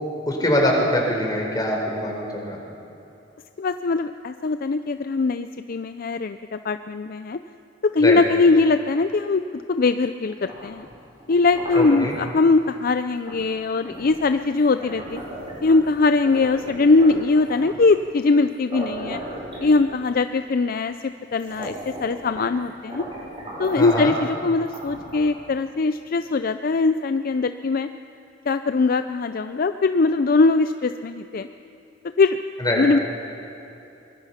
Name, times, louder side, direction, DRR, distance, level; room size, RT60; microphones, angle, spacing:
voice 1, 0.3-2.6 8.0-8.2 11.7-12.1 23.8-24.1 32.6-32.8, left 1 dB, 20° left, 0 dB, 4.4 m, -23 dB
voice 2, 3.6-7.4 7.8-9.4 9.7-10.9 11.3-15.2 15.6-19.2 19.6-23.0 23.6-27.9 28.5-31.5 32.2-32.4 32.8-33.0, left 3 dB, 50° left, 10 dB, 0.5 m, -21 dB
sound 1, 10.3-12.4 13.3-13.5 13.8-15.9 16.2-17.9 18.4-18.5 18.7-20.2 20.9-21.0 21.3-22.6 22.9-24.0 24.6-25.4, right 1 dB, 30° right, 6.9 m, -36 dB
24.0 x 21.5 x 5.8 m, 2.8 s
head